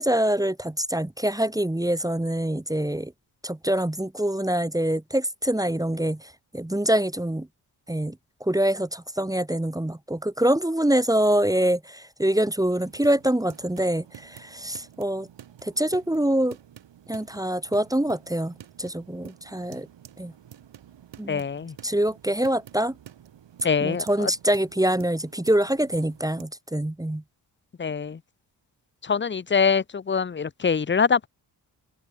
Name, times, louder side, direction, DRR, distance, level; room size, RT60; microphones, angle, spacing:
voice 1, 0.0-3.1 3.4-7.5 7.9-15.3 15.6-16.6 17.1-19.9 20.2-20.3 21.2-21.4 21.8-22.9 23.8-27.2, right 1 dB, 10° right, 1.4 m, -25 dB
sound 1, 12.7-26.4, right 10 dB, 80° right, 4.4 m, -49 dB
voice 2, 21.3-21.7 23.6-24.3 27.8-28.2 29.0-31.3, left 6 dB, 25° left, 0.8 m, -24 dB
cardioid pair, 75°, 42 cm